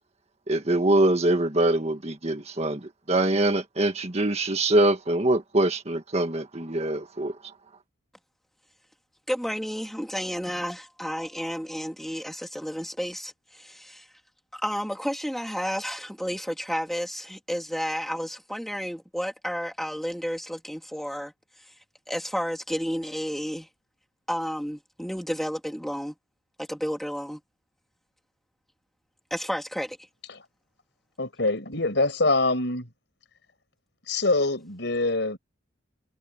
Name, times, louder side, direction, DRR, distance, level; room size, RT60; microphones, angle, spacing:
voice 1, 0.5-2.8 3.1-7.3, right 2 dB, 35° right, 1.7 m, -23 dB
voice 2, 9.3-14.1 14.5-21.3 21.6-21.7 22.1-23.7 24.3-26.1 26.6-27.4 29.3-30.0, equal, ahead, 2.9 m, -31 dB
voice 3, 31.2-32.9 34.1-35.4, left 2 dB, 65° left, 5.2 m, -24 dB
head